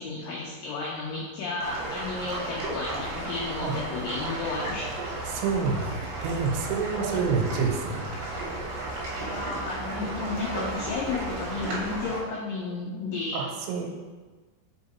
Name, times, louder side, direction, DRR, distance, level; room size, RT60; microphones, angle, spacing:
voice 1, 0.0-4.9 6.9-7.1 9.2-13.4, left 3 dB, 90° left, -4 dB, 2.0 m, -33 dB
sound 1, 1.6-12.2, right 2 dB, 60° right, 2.4 m, -34 dB
voice 2, 5.3-8.1 13.3-13.9, right 5 dB, 90° right, 2 dB, 3.2 m, -28 dB
5.5 x 4.7 x 4.1 m, 1.3 s
omnidirectional pair, 5.1 m